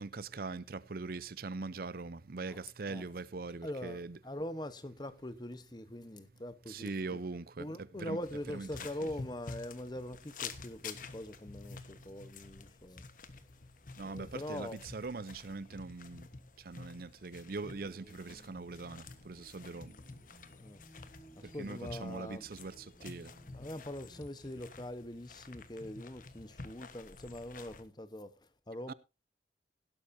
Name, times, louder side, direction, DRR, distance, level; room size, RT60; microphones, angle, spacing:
voice 1, 0.0-4.2 6.7-8.2 8.5-8.7 9.0-9.1 14.0-16.3 16.6-19.9 21.4-23.3 28.9-29.0, right 3 dB, 55° right, 0.6 m, -42 dB
voice 2, 3.6-7.2 7.6-13.1 14.0-14.8 20.6-20.8 21.4-22.5 23.5-28.9, left 1 dB, 25° left, 1.0 m, -43 dB
sound 1, 8.2-27.8, left 4 dB, 45° left, 1.3 m, -50 dB
sound 2, 17.6-24.4, right 1 dB, ahead, 6.1 m, -60 dB
17.0 x 11.5 x 2.7 m
head